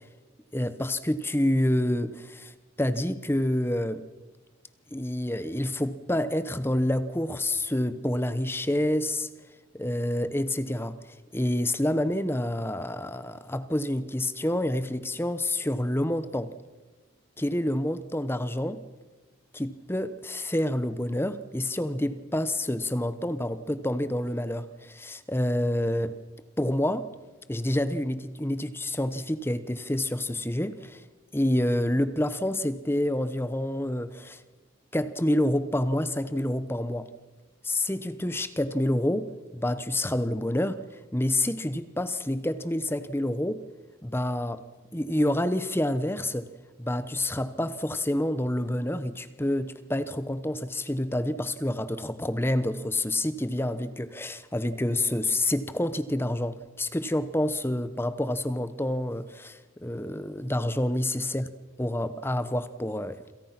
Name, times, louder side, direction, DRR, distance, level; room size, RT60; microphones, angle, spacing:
voice 1, 0.5-4.0 4.9-9.3 9.7-16.5 17.4-18.8 19.5-26.2 26.6-27.1 27.5-31.0 31.3-34.4 34.9-37.1 37.6-43.6 44.0-44.6 44.9-46.5 46.8-61.5 61.8-63.2, left 1 dB, 10° left, 1.0 m, -28 dB
28.5 x 27.0 x 6.0 m
head